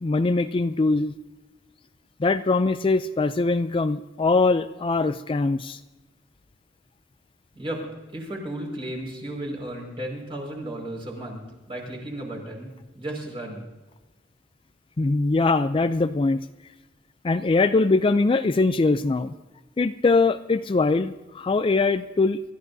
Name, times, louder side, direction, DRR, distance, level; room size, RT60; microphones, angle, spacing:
voice 1, 0.0-1.1 2.2-5.8 15.0-16.4 17.2-19.3 19.8-22.4, left 3 dB, 30° left, 11 dB, 0.4 m, -22 dB
voice 2, 8.1-13.6, right 1 dB, 30° right, -1 dB, 5.2 m, -34 dB
26.0 x 14.0 x 2.7 m, 1.2 s
head